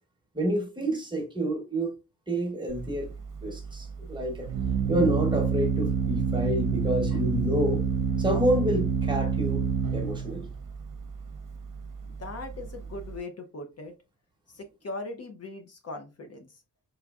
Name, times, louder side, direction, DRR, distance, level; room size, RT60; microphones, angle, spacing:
voice 1, 0.3-1.9 2.3-3.1 3.4-4.5 4.9-7.8 8.2-9.6 9.9-10.5, equal, 15° right, 1.0 m, -28 dB
Organ, 2.7-13.2, right 6 dB, 80° right, 0.7 m, -28 dB
voice 2, 12.0-13.9 14.5-16.5, left 2 dB, 50° left, 0.7 m, -39 dB
4.7 x 3.2 x 2.3 m
wide cardioid pair, 140°, 32 cm